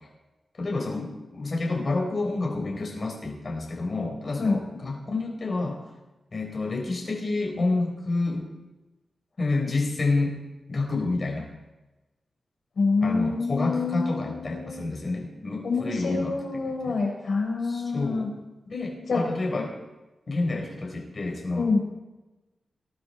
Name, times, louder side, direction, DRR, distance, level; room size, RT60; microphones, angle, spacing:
voice 1, 0.6-5.8 6.3-8.5 9.4-10.4 10.7-11.5 13.0-16.3 16.6-16.9 17.7-18.3 18.7-19.7 20.3-21.6, left 3 dB, 50° left, -1 dB, 4.5 m, -29 dB
voice 2, 12.8-14.8 15.6-18.3 19.1-19.3 21.5-21.8, left 4 dB, 70° left, 1 dB, 4.3 m, -26 dB
21.0 x 12.0 x 4.4 m, 1.1 s
cardioid pair, 80°, 0 cm